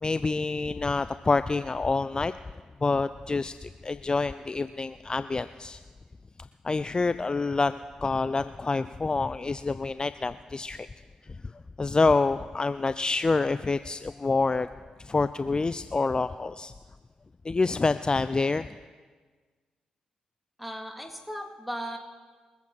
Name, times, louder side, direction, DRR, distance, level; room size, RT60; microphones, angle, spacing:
voice 1, 0.0-2.3 2.8-5.8 6.6-10.9 11.8-14.7 15.0-16.7 17.4-18.7, left 3 dB, 30° left, 13 dB, 0.4 m, -27 dB
voice 2, 20.6-22.0, equal, ahead, 2 dB, 3.2 m, -36 dB
24.5 x 8.4 x 4.4 m, 1.4 s
hypercardioid pair, 40°, 3 cm